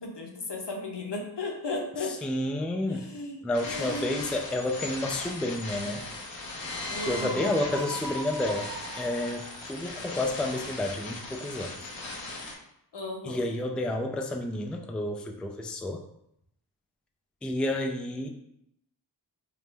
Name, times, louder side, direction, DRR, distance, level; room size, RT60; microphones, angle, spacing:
voice 1, 0.0-2.1 2.9-4.2 6.9-7.5 12.9-13.4, left 2 dB, 65° left, 0 dB, 0.9 m, -35 dB
voice 2, 2.1-3.1 3.4-6.1 7.0-8.7 9.0-11.9 13.2-16.0 17.4-18.3, left 1 dB, ahead, 3 dB, 0.3 m, -30 dB
sound 1, 3.5-12.5, left 3 dB, 90° left, 0.9 m, -38 dB
Screaming, 6.9-9.9, right 3 dB, 70° right, 0.6 m, -40 dB
5.0 x 2.0 x 3.3 m, 0.77 s
wide cardioid pair, 55°, 45 cm